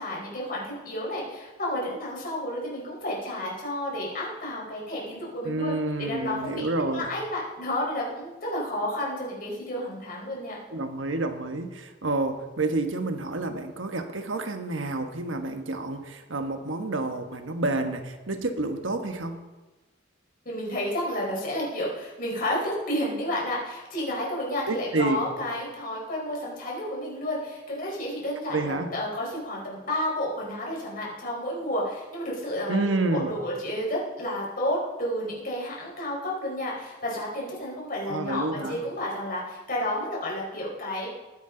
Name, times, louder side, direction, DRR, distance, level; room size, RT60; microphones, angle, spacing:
voice 1, 0.0-5.7 6.0-6.7 6.9-10.6 20.4-41.1, left 1 dB, 45° left, -4 dB, 4.7 m, -31 dB
voice 2, 5.4-7.1 10.7-19.4 24.7-25.3 28.5-28.9 32.7-33.4 38.1-38.8, right 2 dB, 85° right, 6 dB, 1.3 m, -29 dB
20.0 x 10.5 x 3.9 m, 1.2 s
head